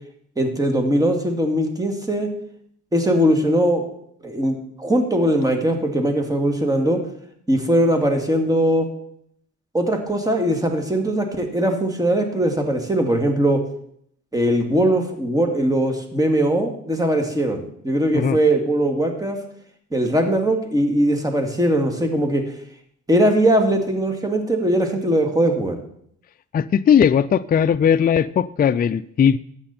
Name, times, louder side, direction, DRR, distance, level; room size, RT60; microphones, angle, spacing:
voice 1, 0.4-2.3 2.9-3.9 4.2-7.0 7.5-8.9 9.7-13.6 14.3-19.4 19.9-22.4 23.1-25.8, right 1 dB, 10° right, 4 dB, 2.3 m, -20 dB
voice 2, 26.5-29.4, left 8 dB, 30° left, 12 dB, 0.4 m, -18 dB
13.0 x 8.8 x 4.3 m, 0.66 s
cardioid pair, 90°, 30 cm